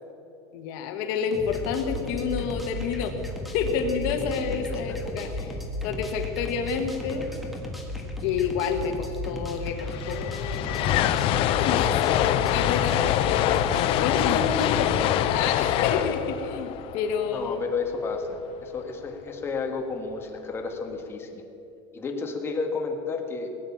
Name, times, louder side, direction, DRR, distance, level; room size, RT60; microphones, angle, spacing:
voice 1, 0.5-3.1 3.5-5.6 5.8-7.3 8.2-10.6 11.4-13.3 13.6-17.6, left 6 dB, 60° left, 5 dB, 1.5 m, -29 dB
sound 1, 1.3-15.0, left 1 dB, ahead, 1.6 m, -35 dB
voice 2, 4.4-5.3 17.2-21.4 21.9-23.5, left 4 dB, 20° left, 2 dB, 1.6 m, -32 dB
sound 2, 9.4-9.5 9.6-17.9, left 12 dB, 45° left, 0.6 m, -25 dB
19.0 x 9.4 x 7.3 m, 2.9 s
supercardioid pair, 150°, 13 cm